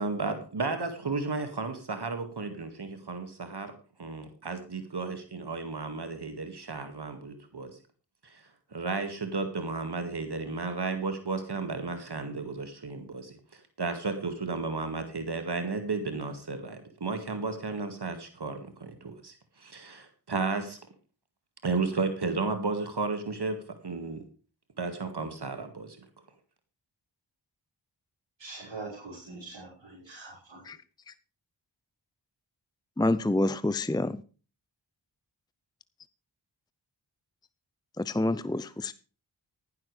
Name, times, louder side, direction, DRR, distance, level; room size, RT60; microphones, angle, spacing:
voice 1, 0.0-3.7 4.0-7.8 8.2-20.8 21.6-23.6 23.8-24.2 24.8-26.1, right 3 dB, 60° right, 2.1 m, -33 dB
voice 2, 28.4-30.6, right 3 dB, 80° right, 6.2 m, -43 dB
voice 3, 33.0-34.2 38.0-38.9, left 2 dB, 10° left, 0.6 m, -27 dB
15.0 x 11.5 x 3.3 m
cardioid pair, 45°, 45 cm